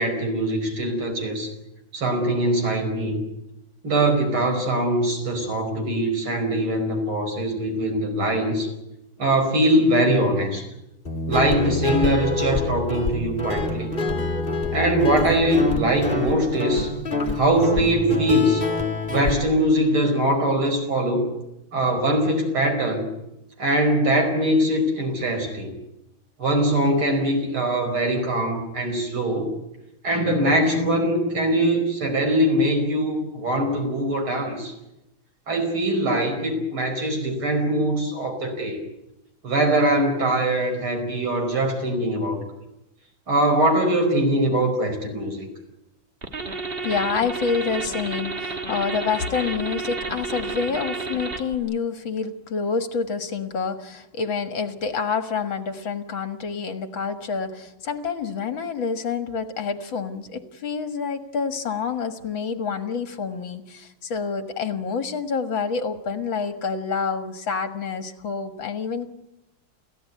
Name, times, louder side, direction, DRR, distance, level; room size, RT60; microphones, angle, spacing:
voice 1, 0.0-1.5 1.9-3.2 3.8-8.7 9.2-10.6 11.3-13.9 14.7-16.9 17.3-18.6 19.1-21.3 21.7-23.0 23.6-25.7 26.4-29.5 30.0-34.7 35.5-38.8 39.4-42.4 43.3-45.5, right 1 dB, 80° right, 4 dB, 5.9 m, -22 dB
Guitar, 11.0-19.3, left 3 dB, 25° left, 3.1 m, -26 dB
sound 1, 46.2-51.5, right 3 dB, 30° right, 1.7 m, -31 dB
voice 2, 46.8-69.1, left 5 dB, 65° left, 8 dB, 2.3 m, -27 dB
30.0 x 15.0 x 9.4 m, 0.91 s
omnidirectional pair, 2.3 m